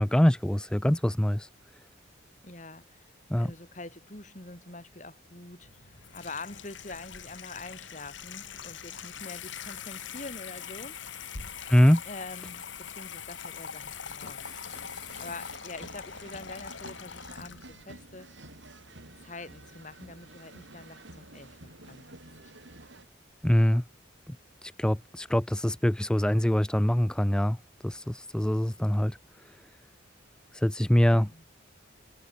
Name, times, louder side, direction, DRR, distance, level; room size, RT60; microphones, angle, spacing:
voice 1, 0.0-1.5 3.3-3.5 11.7-12.0 23.4-23.8 24.6-27.6 27.8-29.2 30.5-31.3, equal, 5° left, 0.4 m, -24 dB
voice 2, 2.4-11.0 12.0-18.3 19.2-22.0 31.1-31.4, left 3 dB, 40° left, 3.0 m, -45 dB
Water tap faucet / Sink (filling or washing), 5.6-17.8, left 7 dB, 70° left, 2.5 m, -42 dB
sound 1, 14.4-23.1, right 2 dB, 65° right, 4.3 m, -50 dB
head